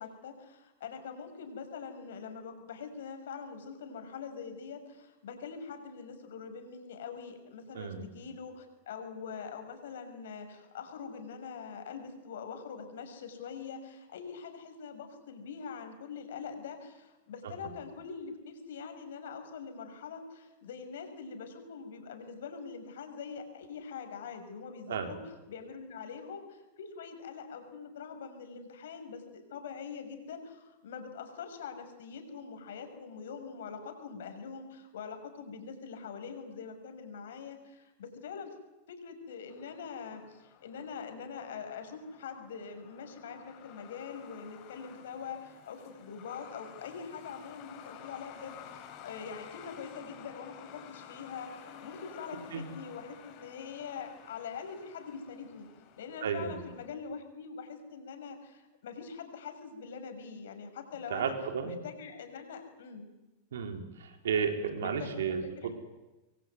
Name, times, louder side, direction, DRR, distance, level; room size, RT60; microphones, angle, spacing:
voice 1, 0.0-25.2 25.5-38.5 38.9-55.7 56.0-61.3 61.6-63.1 64.8-65.7, left 6 dB, 80° left, 6 dB, 6.4 m, -44 dB
voice 2, 7.7-8.1 24.9-25.1 52.5-52.7 56.2-56.6 61.1-61.8 63.5-65.7, right 6 dB, 80° right, 6 dB, 4.1 m, -33 dB
Truck, 39.5-56.9, left 8 dB, 50° left, 6.2 m, -52 dB
27.0 x 23.0 x 9.6 m, 1.0 s
hypercardioid pair, 105°, 0 cm